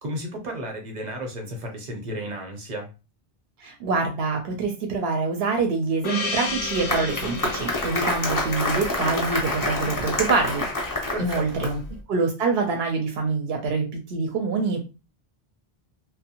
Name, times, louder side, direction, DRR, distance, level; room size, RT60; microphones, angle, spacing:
voice 1, 0.0-2.9 11.1-11.8, equal, 50° right, 3 dB, 0.8 m, -33 dB
voice 2, 3.6-10.6 11.2-11.8 12.1-14.8, right 4 dB, 80° right, 3 dB, 0.8 m, -25 dB
Gong, 6.0-10.8, left 4 dB, 70° left, 0.7 m, -34 dB
Applause, 6.5-11.9, left 2 dB, 25° left, 0.5 m, -28 dB
2.6 x 2.1 x 2.8 m, 0.30 s
omnidirectional pair, 1.0 m